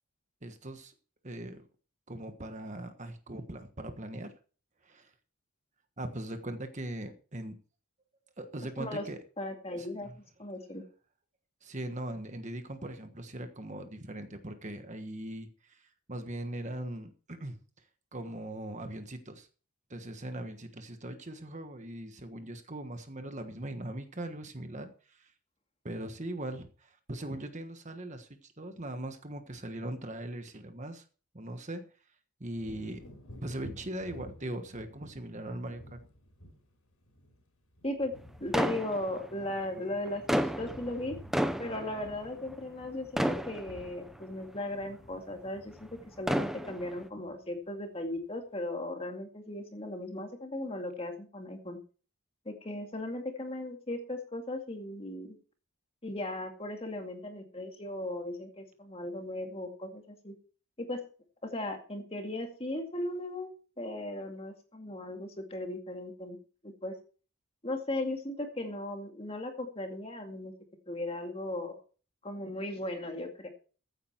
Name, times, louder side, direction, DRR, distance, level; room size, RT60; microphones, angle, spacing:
voice 1, 0.4-0.9 1.2-1.7 2.1-4.3 4.8-5.1 6.0-7.5 8.4-9.2 9.8-10.2 11.6-17.6 18.1-19.5 19.9-25.3 25.8-31.0 31.3-31.8 32.4-33.0 33.4-35.8, right 1 dB, 35° right, 7 dB, 1.3 m, -40 dB
voice 2, 9.4-10.1 10.4-10.8 37.8-38.1 38.4-41.2 41.6-45.9 46.2-51.8 52.5-55.4 56.0-60.3 60.8-61.0 61.4-63.5 63.8-66.4 66.6-66.9 67.6-70.5 70.9-71.8 72.2-73.5, left 1 dB, 25° left, 4 dB, 2.3 m, -37 dB
Wind / Thunder, 32.5-40.1 40.4-47.6 48.0-48.2, equal, 85° left, 4.8 m, -53 dB
sound 1, 38.5-39.5 40.1-42.9 43.2-44.2 44.9-45.0 46.0-47.1, equal, ahead, 0.7 m, -32 dB
15.0 x 9.0 x 4.5 m, 0.38 s
head